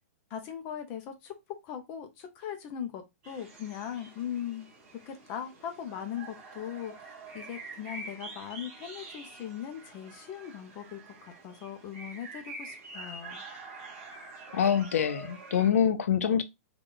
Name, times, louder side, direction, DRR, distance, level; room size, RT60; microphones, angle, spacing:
voice 1, 0.3-1.3 1.6-4.7 5.1-13.4, left 9 dB, 20° left, 0.4 m, -39 dB
sound 1, 3.2-15.7, right 3 dB, 20° right, 1.2 m, -46 dB
voice 2, 14.5-16.4, left 8 dB, 65° left, 0.6 m, -25 dB
3.9 x 2.3 x 3.6 m
hypercardioid pair, 175°, 8 cm